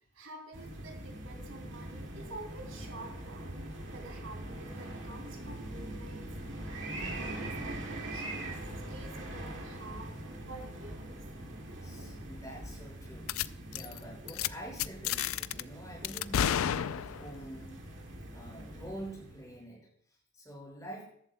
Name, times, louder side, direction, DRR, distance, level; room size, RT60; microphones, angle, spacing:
voice 1, 0.2-6.3 6.9-8.5 8.9-10.1 10.5-11.2, right 2 dB, 75° right, 3 dB, 2.9 m, -48 dB
sound 1, 0.5-19.6, right 1 dB, 60° right, 2.1 m, -43 dB
voice 2, 11.8-17.8 18.3-21.1, right 1 dB, 15° left, -3 dB, 5.4 m, -47 dB
sound 2, 13.3-13.5 13.7-14.0 14.3-14.5 14.8-15.6 16.0-17.4, left 9 dB, 85° left, 0.4 m, -31 dB
14.5 x 11.5 x 2.2 m, 0.64 s
head